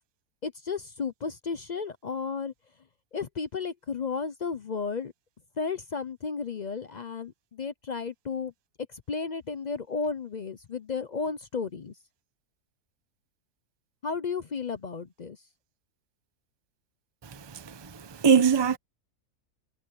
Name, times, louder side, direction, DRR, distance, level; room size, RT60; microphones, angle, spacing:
voice 1, 0.4-2.5 3.1-5.1 5.6-8.5 9.1-11.9 14.0-15.4, left 5 dB, 55° left, 0.4 m, -33 dB
voice 2, 17.2-18.8, right 6 dB, 20° right, 0.9 m, -23 dB
omnidirectional pair, 1.7 m